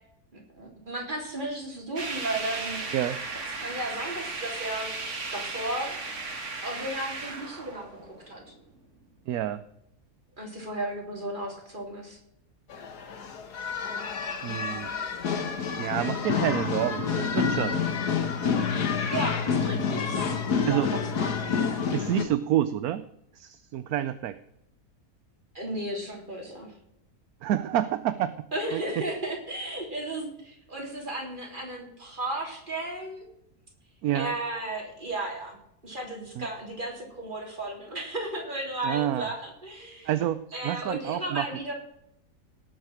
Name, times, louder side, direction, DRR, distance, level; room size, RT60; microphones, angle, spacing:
voice 1, 0.3-2.9 3.6-4.9 5.3-6.0 6.6-7.9 8.3-8.4 10.4-12.2 19.1-20.8 21.2-21.7 25.5-26.7 28.5-33.3 34.1-35.6 35.8-40.1 40.5-41.7, right 1 dB, 30° right, 0 dB, 3.6 m, -34 dB
sound 1, 2.0-8.6, right 3 dB, 50° right, 2.2 m, -36 dB
voice 2, 9.3-9.6 14.4-14.9 15.8-17.8 20.6-20.9 21.9-23.0 23.3-24.4 27.4-28.3 28.7-29.0 34.0-34.4 36.4-36.5 38.8-39.3 40.0-41.5, right 12 dB, 70° right, 13 dB, 1.1 m, -28 dB
sound 2, 12.7-22.2, left 6 dB, 80° left, 1.9 m, -28 dB
18.0 x 6.6 x 6.4 m, 0.76 s
omnidirectional pair, 1.7 m